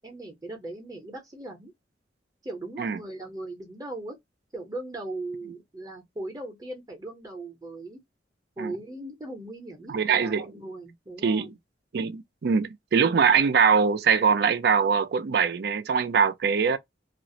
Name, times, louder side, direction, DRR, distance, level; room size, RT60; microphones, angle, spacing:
voice 1, 0.0-1.7 2.4-4.2 4.5-8.0 8.6-11.5, right 2 dB, 20° right, 0.6 m, -38 dB
voice 2, 9.9-10.5 11.2-11.5 11.9-16.8, right 6 dB, 60° right, 0.4 m, -22 dB
2.4 x 2.0 x 2.6 m
head